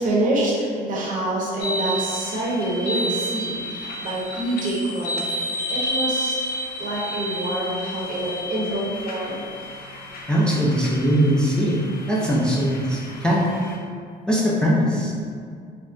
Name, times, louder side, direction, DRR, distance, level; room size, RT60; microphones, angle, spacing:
voice 1, 0.0-6.4 6.8-9.4, right 1 dB, 50° right, -5 dB, 0.8 m, -26 dB
sound 1, 1.6-13.8, equal, 60° left, 0.5 m, -31 dB
voice 2, 10.3-11.8 12.1-13.4 14.3-15.1, equal, 5° left, -5 dB, 0.4 m, -20 dB
3.4 x 2.1 x 2.5 m, 2.2 s
cardioid pair, 110°, 17 cm